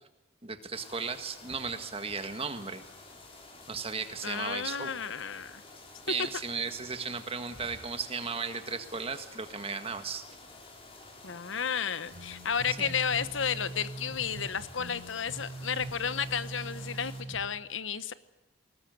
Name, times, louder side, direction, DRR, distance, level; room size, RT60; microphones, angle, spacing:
voice 1, 0.4-2.8 3.7-5.0 6.1-10.3 12.8-12.9, right 5 dB, 30° right, 8 dB, 1.7 m, -35 dB
sound 1, 0.7-17.2, left 2 dB, 30° left, 4.3 m, -51 dB
voice 2, 4.2-5.6 11.2-18.1, left 7 dB, 80° left, 14 dB, 1.1 m, -32 dB
sound 2, 12.1-17.4, right 2 dB, 75° right, 6.4 m, -42 dB
20.5 x 19.5 x 9.3 m, 0.93 s
head